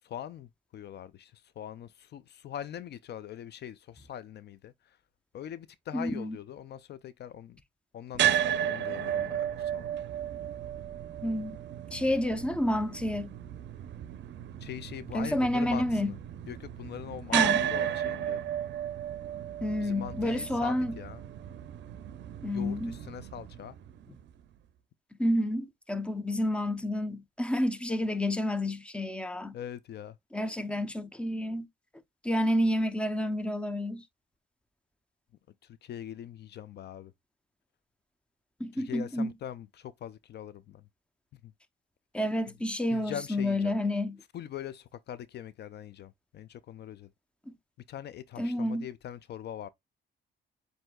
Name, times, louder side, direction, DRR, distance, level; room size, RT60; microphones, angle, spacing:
voice 1, 0.0-5.0 5.3-7.6 7.9-9.9 14.6-16.2 16.5-18.4 19.8-21.2 22.4-23.8 29.5-30.2 35.6-37.1 38.7-40.9 41.4-41.5 42.9-43.8 44.3-47.1 47.9-49.7, left 10 dB, 60° left, 0.4 m, -42 dB
voice 2, 5.9-6.4 11.2-11.6 11.9-13.3 15.1-16.1 17.3-17.6 19.6-20.9 22.4-22.9 25.2-29.6 30.3-31.7 32.2-34.0 38.6-39.3 42.1-44.2 47.5-47.6 48.4-48.9, left 1 dB, 5° left, 0.6 m, -29 dB
sound 1, 8.1-24.3, right 10 dB, 65° right, 0.5 m, -34 dB
7.7 x 2.7 x 2.3 m
cardioid pair, 90°, 20 cm